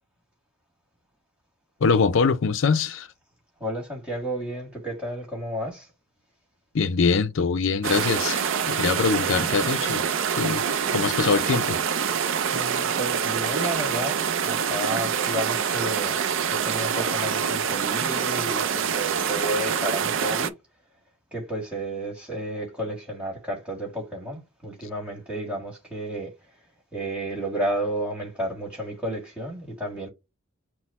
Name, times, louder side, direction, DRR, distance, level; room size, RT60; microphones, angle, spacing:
voice 1, 1.8-3.1 6.7-10.1 10.4-10.6 10.9-11.8, left 5 dB, 60° left, 0.5 m, -23 dB
voice 2, 3.6-5.9 12.5-14.2 14.4-16.2 16.5-20.5 21.3-26.3 26.9-30.1, right 1 dB, 5° right, 1.7 m, -32 dB
sound 1, 7.8-20.5, right 7 dB, 65° right, 0.5 m, -26 dB
6.2 x 2.1 x 4.1 m
head